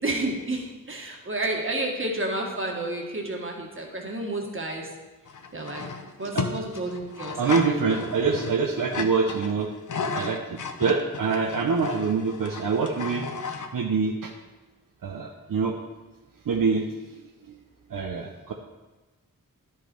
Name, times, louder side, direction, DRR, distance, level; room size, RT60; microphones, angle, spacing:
voice 1, 0.0-4.9 5.5-8.1, right 2 dB, 40° right, 0 dB, 1.6 m, -31 dB
sound 1, 5.3-13.7, left 4 dB, 65° left, 0.7 m, -34 dB
voice 2, 7.4-9.7 10.1-14.3 15.0-15.8 16.4-17.6 17.9-18.5, right 5 dB, 75° right, 2 dB, 0.7 m, -26 dB
10.0 x 5.7 x 4.5 m, 1.2 s
wide cardioid pair, 70°, 33 cm